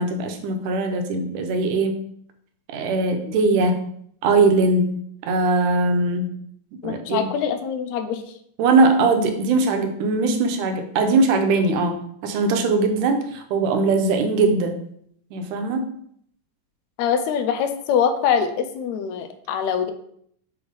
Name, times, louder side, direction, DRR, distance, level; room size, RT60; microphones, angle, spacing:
voice 1, 0.0-2.0 2.7-3.9 4.2-6.4 6.8-7.3 8.6-14.8 15.3-15.9, right 3 dB, 85° right, 5 dB, 2.3 m, -21 dB
voice 2, 6.8-8.2 17.0-19.9, left 7 dB, 75° left, 8 dB, 1.8 m, -23 dB
6.2 x 3.4 x 5.0 m, 0.68 s
omnidirectional pair, 3.5 m